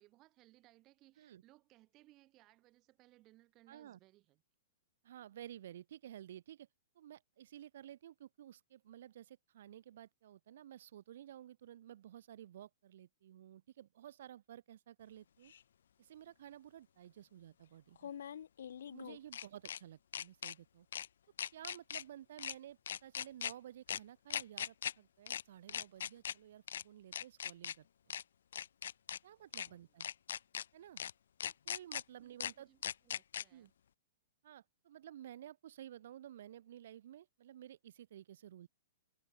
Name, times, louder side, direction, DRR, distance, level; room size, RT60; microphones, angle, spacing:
voice 1, 0.0-4.4 29.2-29.9 32.1-33.7, right 17 dB, 30° right, 5.7 m, -67 dB
voice 2, 3.7-4.0 5.0-6.7 6.9-15.5 16.0-18.1 18.9-20.9 21.5-28.1 29.2-30.1 30.7-31.0 31.6-32.7 33.5-33.7 34.4-38.7, right 11 dB, 65° right, 1.5 m, -53 dB
sound 1, 15.5-15.6 18.0-19.8 20.1-20.5 20.9-21.1 21.4-22.0 22.4-22.5 22.9-23.5 23.9-24.0 24.3-24.9 25.3-25.4 25.7-26.3 26.7-26.8 27.1-27.7 28.1-28.2 28.5-29.2 29.5-29.7 30.0-30.6 31.0-31.1 31.4-32.0 32.4-32.5 32.8-33.4, left 9 dB, 80° left, 0.4 m, -40 dB
hypercardioid pair, 145°, 0 cm